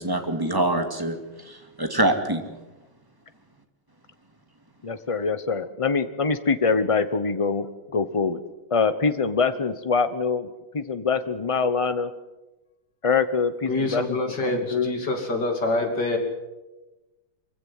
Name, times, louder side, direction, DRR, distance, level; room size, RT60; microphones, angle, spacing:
voice 1, 0.0-2.4, right 1 dB, 10° right, 5 dB, 2.2 m, -25 dB
voice 2, 4.8-8.4 8.7-10.5 10.7-12.1 13.0-14.9, left 5 dB, 35° left, 11 dB, 0.5 m, -24 dB
voice 3, 13.7-16.2, left 2 dB, 55° left, 4 dB, 3.6 m, -26 dB
24.0 x 16.0 x 9.6 m, 1.1 s
omnidirectional pair, 2.3 m